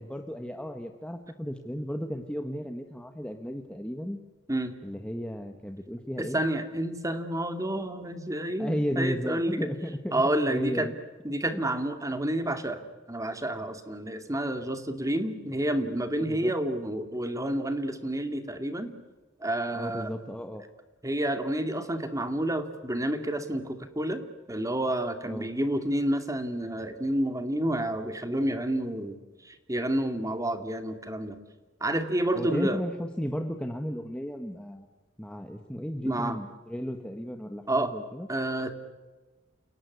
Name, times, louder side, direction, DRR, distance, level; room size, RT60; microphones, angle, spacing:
voice 1, 0.0-4.2 4.8-6.4 8.6-10.1 10.5-10.9 11.5-11.6 16.3-16.5 19.7-20.6 25.3-25.5 32.3-34.9 35.2-38.3, equal, 5° left, 5 dB, 1.3 m, -34 dB
voice 2, 6.2-9.6 10.1-10.9 11.2-12.8 13.1-18.9 19.4-20.1 21.0-24.2 24.5-29.2 29.4-31.4 31.8-32.8 36.0-36.4 37.7-37.9 38.3-38.7, right 1 dB, 15° right, 8 dB, 2.3 m, -29 dB
29.5 x 18.0 x 9.7 m, 1.2 s
head